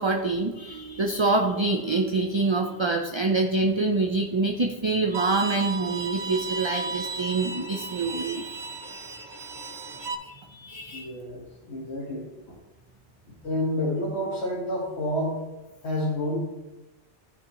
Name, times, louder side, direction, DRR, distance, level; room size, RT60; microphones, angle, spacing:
voice 1, 0.0-9.6 10.0-11.1, right 3 dB, 30° right, 3 dB, 0.6 m, -26 dB
Bowed string instrument, 5.1-10.1, right 4 dB, 70° right, 1.1 m, -34 dB
voice 2, 10.9-12.3 13.4-15.4 15.8-16.4, left 1 dB, 75° left, -5 dB, 1.7 m, -29 dB
14.0 x 5.9 x 3.0 m, 1.1 s
omnidirectional pair, 1.2 m